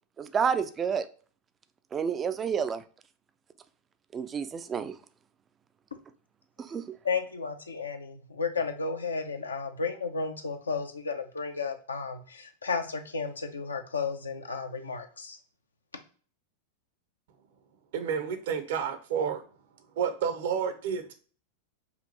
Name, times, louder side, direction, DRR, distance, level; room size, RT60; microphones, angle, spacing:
voice 1, 0.2-1.1 1.9-2.8 4.1-5.0 6.6-6.9, right 7 dB, 20° right, 11 dB, 0.4 m, -29 dB
voice 2, 7.0-15.4, left 4 dB, 75° left, 6 dB, 0.6 m, -33 dB
voice 3, 17.9-19.4 20.0-21.1, right 7 dB, 55° right, 7 dB, 0.7 m, -30 dB
5.4 x 2.5 x 2.8 m, 0.41 s
figure-of-eight pair, 90°, 0 cm